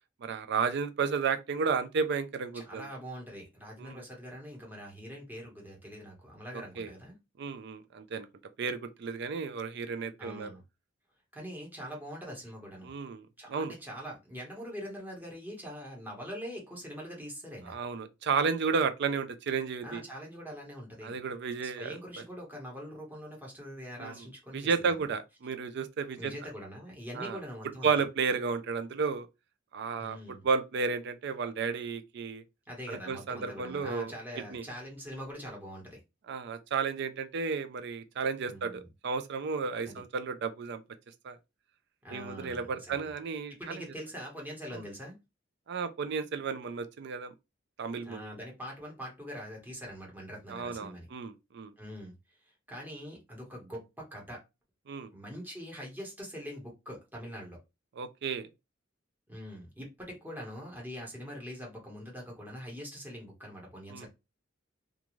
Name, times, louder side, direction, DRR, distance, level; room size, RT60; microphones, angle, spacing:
voice 1, 0.2-2.9 3.8-4.0 6.5-6.9 7.4-8.3 8.6-10.5 12.8-13.2 13.5-13.7 17.7-20.0 21.0-22.0 24.0-24.2 24.5-26.3 27.2-27.4 27.8-29.3 29.7-32.4 32.9-34.1 34.5-34.6 36.3-40.8 41.2-41.4 42.1-43.8 44.7-44.8 45.7-47.3 47.8-48.2 50.5-51.7 54.9-55.1 58.0-58.5 63.9-64.1, right 5 dB, 60° right, 0.4 m, -32 dB
voice 2, 2.5-7.2 10.2-10.6 11.3-12.9 13.4-17.8 19.8-21.2 21.6-25.1 26.2-27.9 30.0-30.4 32.7-36.0 38.5-38.9 39.8-40.0 42.0-43.1 43.5-45.1 48.0-51.1 51.8-52.1 52.7-54.4 55.1-57.6 59.3-64.1, equal, 10° right, 1.0 m, -43 dB
2.5 x 2.3 x 3.0 m
head